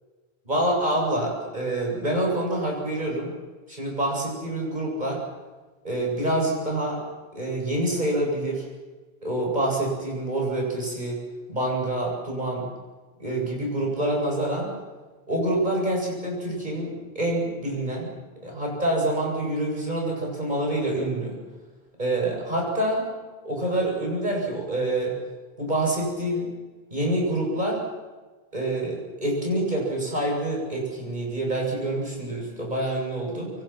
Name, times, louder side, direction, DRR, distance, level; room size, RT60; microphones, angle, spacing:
voice 1, 0.5-3.3 3.7-5.2 5.8-7.0 7.3-8.7 9.2-11.2 11.5-12.7 13.2-14.7 15.3-18.1 18.4-21.4 22.0-23.1 23.4-25.2 25.6-26.5 26.9-27.8 28.5-33.5, right 1 dB, 45° right, -1 dB, 8.0 m, -26 dB
26.5 x 24.0 x 6.0 m, 1.3 s
omnidirectional pair, 1.1 m